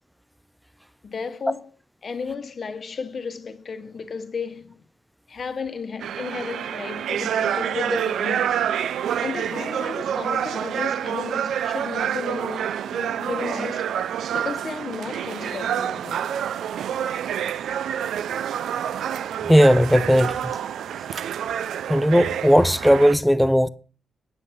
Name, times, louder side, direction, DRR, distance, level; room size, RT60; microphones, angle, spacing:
voice 1, 1.0-1.7 2.0-4.8 5.3-8.6 9.2-13.9 14.3-16.3, left 5 dB, 35° left, 1.1 m, -33 dB
sound 1, 6.0-23.1, right 9 dB, 80° right, 0.4 m, -27 dB
voice 2, 19.5-20.4 21.9-23.7, equal, ahead, 0.4 m, -16 dB
9.6 x 8.1 x 5.8 m
wide cardioid pair, 175°, 0 cm